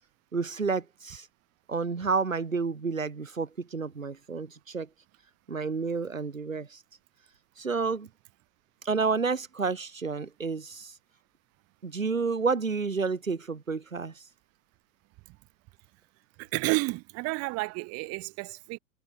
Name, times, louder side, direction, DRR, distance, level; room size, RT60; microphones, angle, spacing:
voice 1, 0.3-1.3 1.7-4.9 5.5-6.8 7.6-8.1 8.8-10.9 11.8-14.2, right 4 dB, 80° right, 2.2 m, -30 dB
voice 2, 16.4-18.8, right 24 dB, 40° right, 2.7 m, -31 dB
figure-of-eight pair, 90°, 39 cm